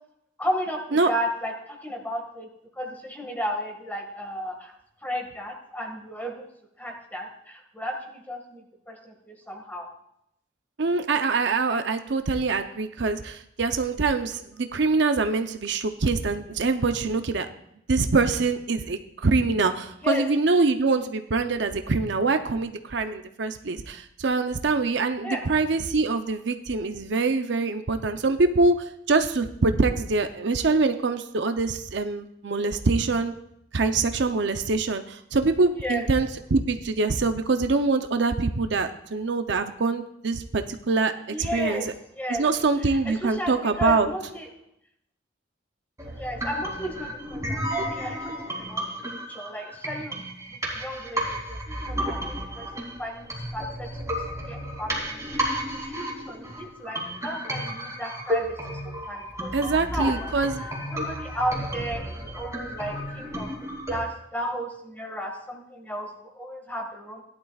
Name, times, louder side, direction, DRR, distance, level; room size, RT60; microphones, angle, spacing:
voice 1, 0.4-2.5 2.8-4.7 5.0-6.5 6.8-8.6 8.9-9.9 20.0-20.2 25.2-25.5 35.7-36.1 41.3-41.9 42.2-42.5 42.8-44.5 46.1-50.2 50.7-54.2 54.5-60.3 60.9-63.5 63.9-67.2, equal, 10° left, 2 dB, 1.8 m, -34 dB
voice 2, 10.8-17.5 17.9-33.3 33.7-41.8 42.3-44.1 59.5-60.6, right 3 dB, 65° right, 8 dB, 0.7 m, -24 dB
sound 1, 46.0-64.0, equal, 15° right, 2.7 m, -32 dB
17.5 x 11.5 x 2.4 m, 0.76 s
head